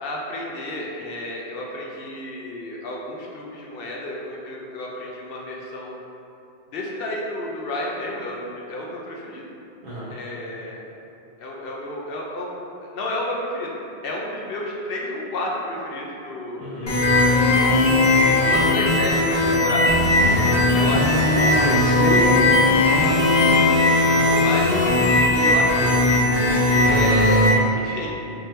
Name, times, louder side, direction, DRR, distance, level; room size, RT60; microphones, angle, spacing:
voice 1, 0.0-6.0 6.7-9.4 10.1-10.8 11.4-13.7 14.0-17.4 18.3-19.9 20.7-21.7 24.3-24.7 25.2-26.1 26.9-27.4 27.7-28.1, left 1 dB, 65° left, -3 dB, 0.7 m, -31 dB
voice 2, 16.6-17.0 20.7-23.4 26.7-27.1, equal, 60° right, -11 dB, 0.8 m, -30 dB
sound 1, 16.9-27.5, left 2 dB, 35° left, 0.5 m, -18 dB
3.6 x 2.8 x 3.2 m, 2.8 s
omnidirectional pair, 1.1 m